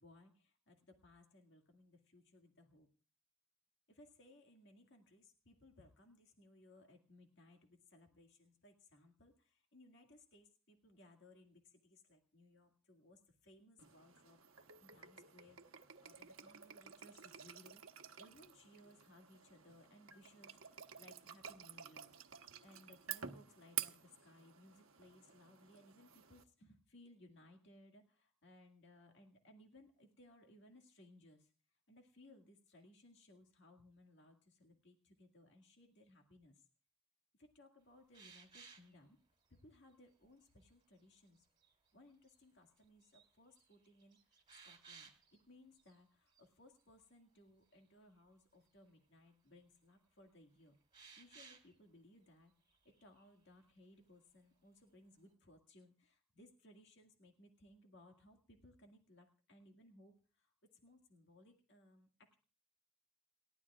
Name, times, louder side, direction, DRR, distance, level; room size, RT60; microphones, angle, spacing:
voice 1, 0.0-2.9 3.9-22.2 22.6-36.7 37.4-39.2 39.5-41.5 41.9-50.8 51.2-62.3, left 1 dB, 55° left, 3 dB, 2.0 m, -64 dB
sound 1, 13.8-26.4, right 9 dB, 75° right, 1.1 m, -51 dB
sound 2, 38.1-39.0 39.6-39.7 40.2-40.7 41.3-41.7 42.3-42.4 42.8-43.3 43.6-45.4 45.8-46.0 46.3-46.5 50.9-51.8 52.7-53.3, right 5 dB, 20° right, 2.9 m, -60 dB
28.5 x 13.0 x 2.4 m, 0.37 s
head